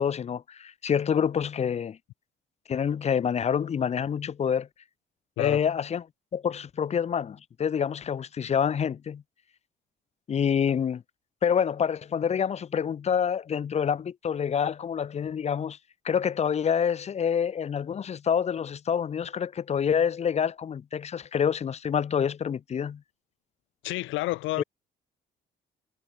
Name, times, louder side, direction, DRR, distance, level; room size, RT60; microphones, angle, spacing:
voice 1, 0.0-2.0 2.7-4.7 5.4-6.0 6.3-9.2 10.3-11.0 11.4-15.8 16.0-23.0 24.6-24.7, left 7 dB, 35° left, 0.4 m, -27 dB
voice 2, 23.8-24.6, left 18 dB, 85° left, 0.6 m, -29 dB
cardioid pair, 75°, 19 cm